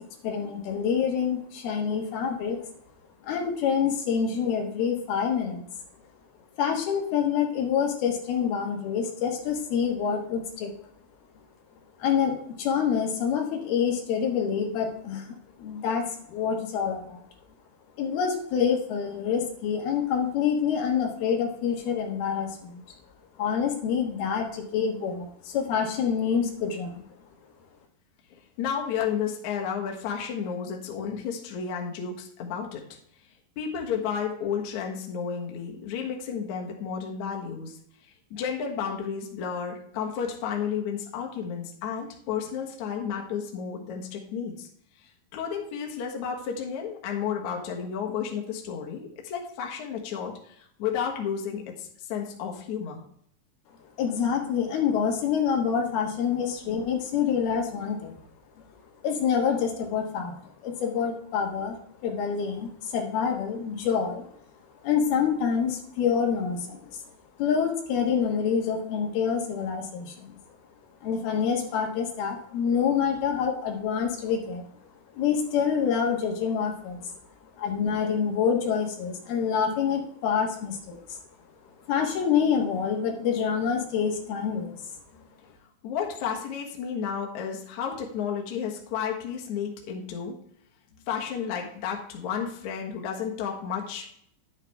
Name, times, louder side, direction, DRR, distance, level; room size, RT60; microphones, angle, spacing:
voice 1, 0.2-2.6 3.2-5.6 6.6-10.7 12.0-17.2 18.0-22.8 23.4-27.0 54.0-58.1 59.0-61.7 62.0-64.3 64.8-67.0 67.4-70.4 71.0-74.7 75.1-77.1 77.6-81.2 81.9-84.8, left 7 dB, 85° left, 2 dB, 3.4 m, -27 dB
voice 2, 28.3-33.0 33.6-37.8 38.0-44.7 45.0-53.0 85.1-85.2 85.8-90.4 91.1-94.1, left 7 dB, 60° left, 0 dB, 2.5 m, -32 dB
11.0 x 8.3 x 3.5 m, 0.66 s
omnidirectional pair, 4.3 m